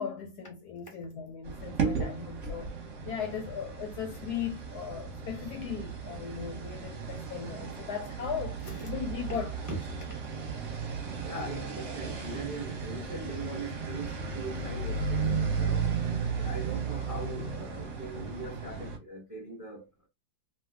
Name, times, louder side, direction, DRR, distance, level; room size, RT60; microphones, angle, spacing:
voice 1, 0.0-2.7 3.0-9.5, left 7 dB, 70° left, 1.0 m, -37 dB
sound 1, 1.4-19.0, right 5 dB, 50° right, 1.1 m, -35 dB
voice 2, 11.2-15.9 16.4-20.1, right 2 dB, 20° right, 0.5 m, -41 dB
3.0 x 2.2 x 3.5 m
omnidirectional pair, 2.0 m